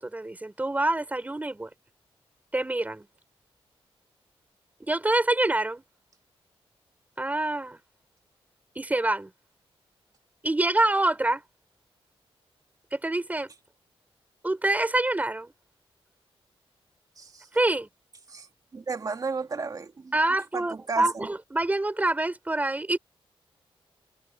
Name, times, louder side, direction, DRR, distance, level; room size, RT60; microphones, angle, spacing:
voice 1, 0.0-1.7 2.5-3.1 4.8-5.8 7.2-7.8 8.8-9.3 10.4-11.4 12.9-13.5 14.4-15.5 17.5-17.9 20.1-23.0, right 2 dB, 15° right, 5.5 m, -26 dB
voice 2, 18.7-20.1 20.5-21.3, right 4 dB, 40° right, 2.6 m, -33 dB
wide cardioid pair, 125°, 10 cm